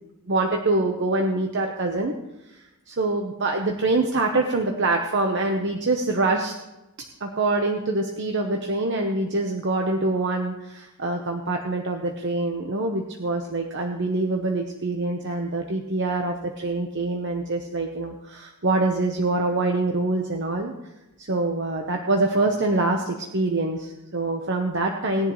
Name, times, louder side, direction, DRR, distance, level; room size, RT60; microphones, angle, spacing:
voice 1, 0.3-2.1 2.9-6.5 7.2-20.7 21.2-25.3, right 2 dB, 55° right, 2 dB, 1.1 m, -25 dB
19.5 x 10.0 x 3.2 m, 0.98 s
head